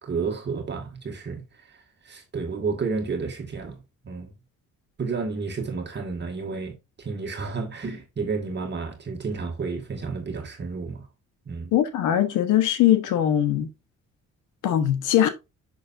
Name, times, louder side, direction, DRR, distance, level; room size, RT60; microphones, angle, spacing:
voice 1, 0.0-1.8 2.0-4.3 5.0-11.1 11.5-11.7, right 4 dB, 35° right, 1.8 m, -31 dB
voice 2, 11.7-13.7 14.6-15.3, left 11 dB, 90° left, 1.2 m, -21 dB
6.8 x 6.4 x 2.6 m
cardioid pair, 90°, 30 cm